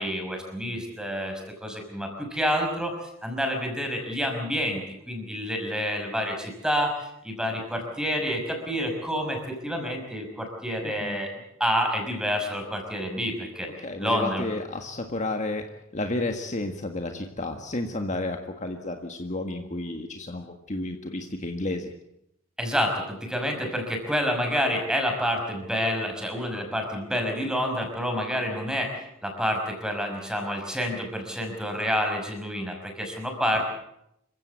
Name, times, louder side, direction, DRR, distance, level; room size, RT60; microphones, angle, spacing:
voice 1, 0.0-2.9 3.2-11.3 11.6-13.7 14.0-14.5 22.6-33.7, equal, 5° right, 3 dB, 5.5 m, -28 dB
voice 2, 10.8-11.2 13.8-15.6 15.9-21.9, left 2 dB, 35° left, 4 dB, 1.7 m, -31 dB
27.0 x 15.5 x 8.4 m, 0.80 s
head